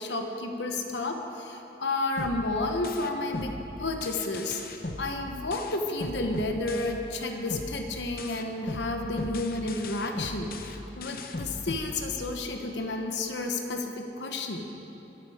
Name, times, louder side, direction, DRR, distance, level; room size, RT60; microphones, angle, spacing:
voice 1, 0.0-14.7, left 2 dB, 85° left, 4 dB, 1.2 m, -31 dB
sound 1, 2.2-7.2 7.5-12.5, left 2 dB, 55° left, 0.8 m, -38 dB
24.0 x 9.1 x 5.0 m, 3.0 s
head